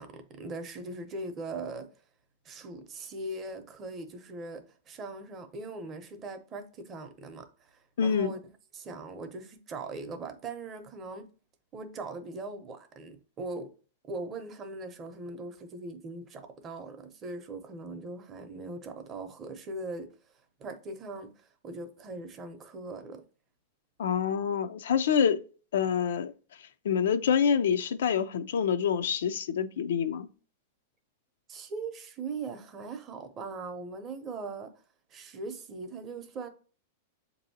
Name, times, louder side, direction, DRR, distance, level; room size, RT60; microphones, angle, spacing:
voice 1, 0.0-1.9 2.4-8.4 8.7-11.3 11.7-13.7 14.1-20.1 20.6-23.2 31.5-34.7 35.1-36.5, right 3 dB, 25° right, 0.6 m, -40 dB
voice 2, 8.0-8.3 24.0-25.4 25.7-26.3 26.8-30.3, left 7 dB, 80° left, 0.4 m, -26 dB
7.1 x 2.7 x 2.7 m
supercardioid pair, 150°, 0 cm